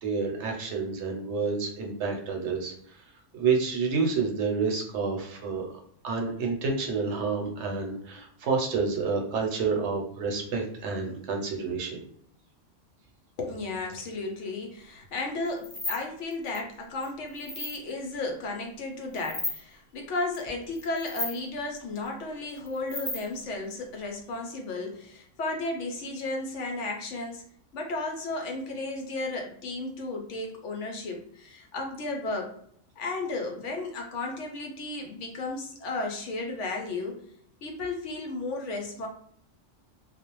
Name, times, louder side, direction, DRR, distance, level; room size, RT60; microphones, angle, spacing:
voice 1, 0.0-2.7 3.3-5.7 6.0-12.0, right 4 dB, 70° right, 1 dB, 0.9 m, -29 dB
voice 2, 13.4-27.4 27.7-32.5 33.0-37.2 37.6-39.1, left 2 dB, 75° left, 2 dB, 0.9 m, -34 dB
sound 1, 15.5-16.0 16.3-16.6 17.0-17.8 19.1-19.6 20.3-20.5 20.8-21.4 22.6-23.4, left 1 dB, 20° left, 0.6 m, -34 dB
2.4 x 2.0 x 2.9 m, 0.66 s
omnidirectional pair, 1.3 m